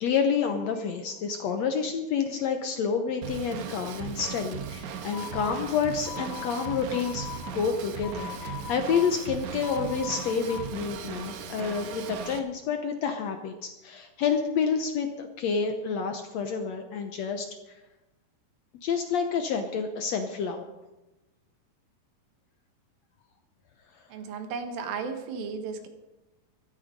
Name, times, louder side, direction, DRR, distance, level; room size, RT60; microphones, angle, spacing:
voice 1, 0.0-17.8 18.8-20.7, left 6 dB, 70° left, 6 dB, 1.7 m, -29 dB
Drum kit / Drum, 3.2-12.4, right 7 dB, 65° right, 2.3 m, -38 dB
sound 1, 5.1-10.6, left 11 dB, 50° left, 3.4 m, -41 dB
voice 2, 24.1-25.9, right 5 dB, 90° right, 7 dB, 3.3 m, -34 dB
15.5 x 13.0 x 5.2 m, 1.0 s
omnidirectional pair, 4.0 m